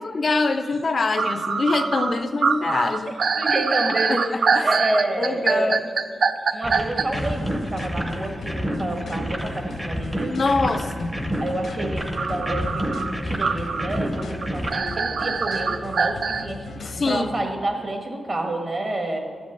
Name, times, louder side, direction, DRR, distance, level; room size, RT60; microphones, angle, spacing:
voice 1, 0.0-3.1 4.1-4.2 4.5-4.7 5.2-5.8 10.3-11.4 16.9-17.3, left 3 dB, 45° left, 8 dB, 0.4 m, -24 dB
sound 1, 0.7-0.8 1.1-7.1 12.1-16.5, right 5 dB, 65° right, 0.4 m, -24 dB
voice 2, 3.4-5.8 6.5-10.4 10.8-10.9 11.4-19.2, right 1 dB, 40° right, 3 dB, 1.4 m, -29 dB
sound 2, 6.6-14.8, equal, 10° right, 0.7 m, -29 dB
sound 3, 7.1-17.4, left 3 dB, 90° left, 0.8 m, -38 dB
12.5 x 5.2 x 7.6 m, 2.1 s
wide cardioid pair, 145°, 0 cm